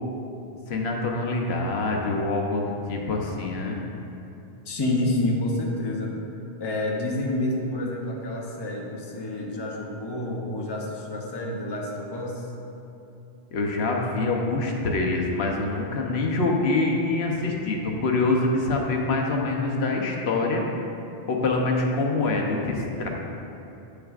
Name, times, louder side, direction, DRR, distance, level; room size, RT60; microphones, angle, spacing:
voice 1, 0.7-3.8 13.5-20.6 21.3-23.1, left 3 dB, 80° left, 0 dB, 1.0 m, -25 dB
voice 2, 4.7-6.2 6.6-12.4, left 1 dB, 25° left, -2 dB, 0.7 m, -28 dB
9.0 x 6.8 x 2.4 m, 2.8 s
omnidirectional pair, 1.1 m